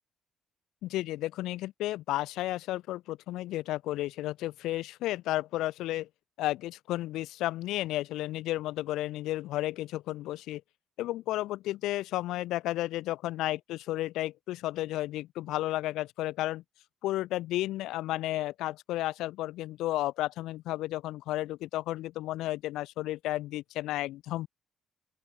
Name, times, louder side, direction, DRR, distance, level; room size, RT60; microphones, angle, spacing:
voice 1, 0.8-6.1 6.4-10.6 11.0-16.6 17.0-24.5, left 16 dB, 80° left, 1.6 m, -32 dB
open air
supercardioid pair, 60°, 0 cm